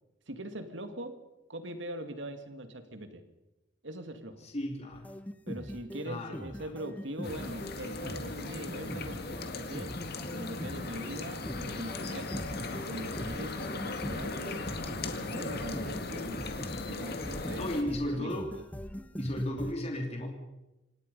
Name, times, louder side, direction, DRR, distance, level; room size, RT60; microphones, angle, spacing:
voice 1, 0.3-1.1 1.5-3.2 3.8-4.4 5.5-9.9 10.3-16.5 16.8-18.5, right 1 dB, 70° right, 7 dB, 2.3 m, -42 dB
voice 2, 4.4-5.2 6.0-6.7 17.5-18.5 19.2-20.3, left 1 dB, 35° left, 2 dB, 2.8 m, -34 dB
sound 1, 4.9-19.7, equal, 10° left, 0.7 m, -42 dB
sound 2, 7.2-17.8, left 3 dB, 55° left, 2.1 m, -38 dB
27.0 x 18.0 x 5.5 m, 0.99 s
head